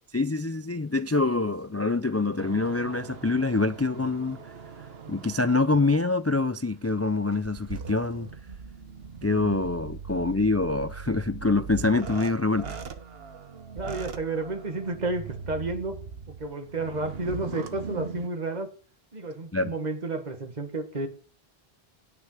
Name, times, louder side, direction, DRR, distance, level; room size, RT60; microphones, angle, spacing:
voice 1, 0.1-4.4 5.1-8.3 9.2-12.8 19.5-19.7, left 3 dB, 25° left, 0.3 m, -25 dB
sound 1, 2.4-6.1 6.7-18.3, right 6 dB, 70° right, 1.3 m, -40 dB
voice 2, 13.8-16.0 16.3-18.7 19.1-21.1, right 2 dB, 45° right, 1.9 m, -31 dB
10.0 x 8.5 x 6.5 m
omnidirectional pair, 1.0 m